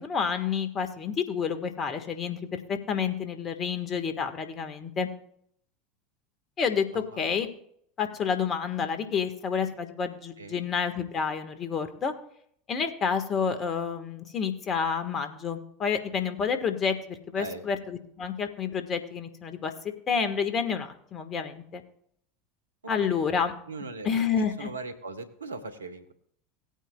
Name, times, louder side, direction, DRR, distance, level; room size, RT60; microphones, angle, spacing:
voice 1, 0.0-5.1 6.6-7.5 8.0-12.1 12.7-21.8 22.9-23.5 24.0-24.7, left 6 dB, 35° left, 8 dB, 1.6 m, -29 dB
voice 2, 10.4-10.7 17.4-17.7 23.0-23.2 23.7-24.3 24.6-26.1, right 3 dB, 85° right, 9 dB, 1.1 m, -39 dB
18.0 x 9.1 x 2.4 m, 0.66 s
hypercardioid pair, 80°, 0 cm